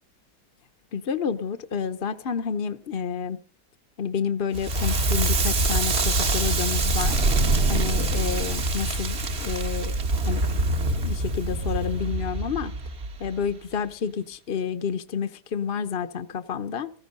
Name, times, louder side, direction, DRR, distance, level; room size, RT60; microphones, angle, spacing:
voice 1, 0.9-3.4 4.0-7.2 7.7-9.9 10.3-10.5 11.0-12.7 13.2-16.9, left 6 dB, 45° left, 10 dB, 0.9 m, -29 dB
Crackle, 4.5-13.5, right 2 dB, 40° right, 1.4 m, -24 dB
16.0 x 14.5 x 5.4 m, 0.42 s
omnidirectional pair, 1.9 m